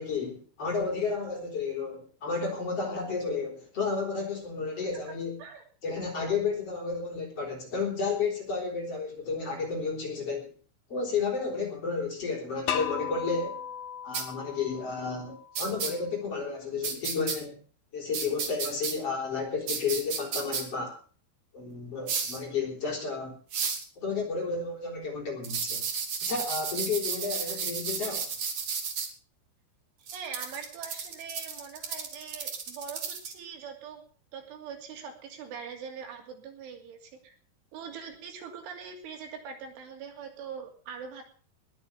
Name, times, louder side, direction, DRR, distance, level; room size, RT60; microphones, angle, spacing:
voice 1, 0.0-5.4 5.8-10.5 10.9-13.6 14.0-17.6 17.9-21.0 21.5-23.4 24.0-25.8 26.2-28.2, left 4 dB, 30° left, 0 dB, 4.8 m, -32 dB
sound 1, 12.7-15.6, left 9 dB, 70° left, 2.4 m, -36 dB
sound 2, 14.1-14.2 15.5-15.9 16.8-17.4 18.1-18.9 19.7-20.6 22.1-22.4 23.5-23.8 25.4-29.1 30.1-33.3, right 6 dB, 45° right, 2.6 m, -32 dB
voice 2, 30.1-34.0 34.3-37.4 37.7-41.2, right 6 dB, 80° right, 4 dB, 5.3 m, -42 dB
20.0 x 7.4 x 7.1 m, 0.40 s
omnidirectional pair, 5.5 m